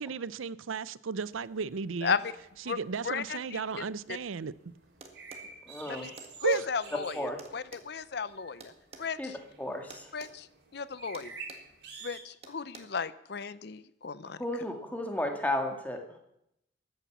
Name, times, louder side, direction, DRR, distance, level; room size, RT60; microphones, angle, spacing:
voice 1, 0.0-2.2 2.7-4.5 6.4-6.7, right 5 dB, 85° right, 0.5 m, -34 dB
sound 1, 1.2-12.2, right 4 dB, 55° right, 3.6 m, -51 dB
voice 2, 2.0-2.3 2.7-2.8 3.0-3.9 5.9-6.1 6.4-8.7 9.0-9.4 10.1-10.5 10.7-11.3 12.0-14.4, left 5 dB, 55° left, 0.5 m, -35 dB
sound 2, 5.0-5.5 6.2-6.7 7.4-9.1 9.9-10.4 10.6-10.8 11.1-11.7 12.4-12.8, right 3 dB, 30° right, 1.7 m, -49 dB
voice 3, 5.7-6.1 7.1-7.4 9.2-9.3 9.6-10.1 14.4-16.0, left 1 dB, 10° left, 2.0 m, -33 dB
14.0 x 11.0 x 7.3 m
head